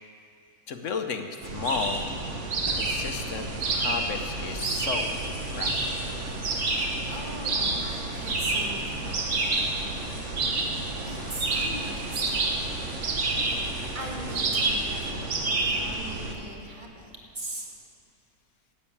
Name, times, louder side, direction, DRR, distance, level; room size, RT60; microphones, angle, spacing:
voice 1, 0.7-2.1 2.8-5.1 5.5-5.7 6.0-6.1, left 5 dB, 55° left, 6 dB, 1.0 m, -33 dB
sound 1, 1.4-16.4, right 3 dB, 50° right, 1.4 m, -29 dB
sound 2, 1.6-15.1, left 1 dB, 15° left, 1.3 m, -46 dB
voice 2, 6.4-10.1 11.0-12.8 13.9-17.8, right 1 dB, 30° right, -1 dB, 1.7 m, -41 dB
12.0 x 8.3 x 8.6 m, 2.6 s
omnidirectional pair, 1.7 m